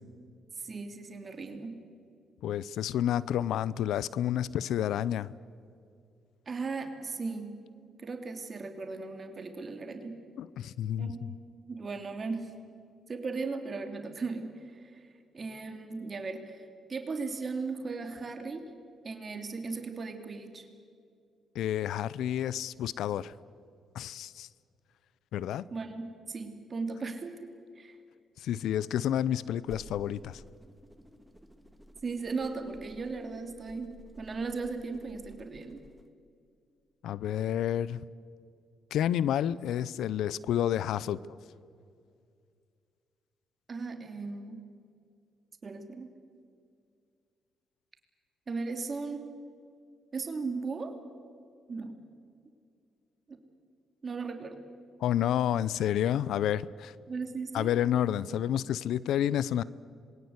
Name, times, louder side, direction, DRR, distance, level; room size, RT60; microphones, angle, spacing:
voice 1, 0.6-1.8 6.5-7.6 8.0-10.2 11.0-11.3 11.7-12.5 13.1-18.7 19.0-20.7 25.7-28.0 32.0-35.8 43.7-44.6 45.6-46.1 48.5-49.2 50.1-51.0 51.7-52.0 53.3-53.4 54.0-54.6 57.1-57.7 58.3-58.4 58.6-58.7, right 4 dB, 40° right, 5 dB, 2.9 m, -37 dB
voice 2, 2.4-5.3 10.4-11.3 21.5-23.3 23.9-24.5 25.3-25.7 28.4-30.4 37.0-38.0 38.9-41.2 55.0-56.9 57.5-59.6, left 10 dB, 80° left, 20 dB, 0.6 m, -30 dB
sound 1, 29.6-36.1, right 1 dB, 5° right, 1.8 m, -53 dB
26.5 x 22.0 x 8.1 m, 2.3 s
supercardioid pair, 70°, 0 cm